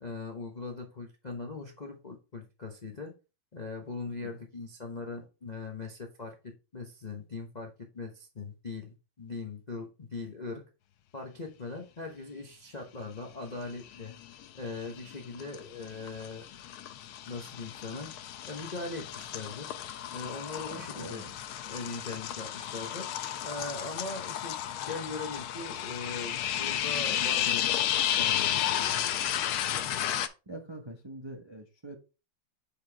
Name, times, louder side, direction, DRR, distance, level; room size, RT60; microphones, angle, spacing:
voice 1, 0.0-3.1 3.5-10.6 11.1-14.1 14.5-16.5 17.3-18.1 18.5-19.7 20.1-21.2 21.6-23.1 23.4-24.6 24.9-29.3, left 3 dB, 50° left, 0.5 m, -40 dB
voice 2, 4.1-4.4 20.7-21.3 30.5-32.0, right 1 dB, 40° right, 0.4 m, -44 dB
sound 1, 13.9-14.4 14.8-30.3, left 11 dB, 85° left, 1.5 m, -33 dB
6.8 x 5.3 x 3.3 m
omnidirectional pair, 2.3 m